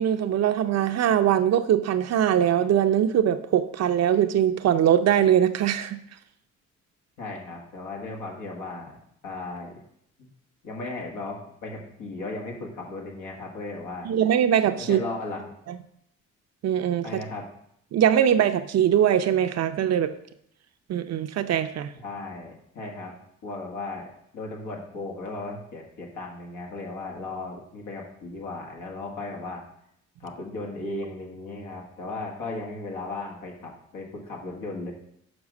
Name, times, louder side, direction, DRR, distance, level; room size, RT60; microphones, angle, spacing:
voice 1, 0.0-6.0 14.0-15.0 16.6-17.1 17.9-20.1 20.9-21.9, right 10 dB, 60° right, 10 dB, 0.6 m, -22 dB
voice 2, 7.2-9.0 9.2-9.8 10.2-10.3 10.6-14.1 14.8-15.6 17.0-17.5 22.0-23.1 23.4-24.1 24.3-29.6 30.2-34.9, left 2 dB, 85° left, -1 dB, 1.7 m, -36 dB
6.1 x 4.9 x 6.2 m, 0.73 s
cardioid pair, 90°, 30 cm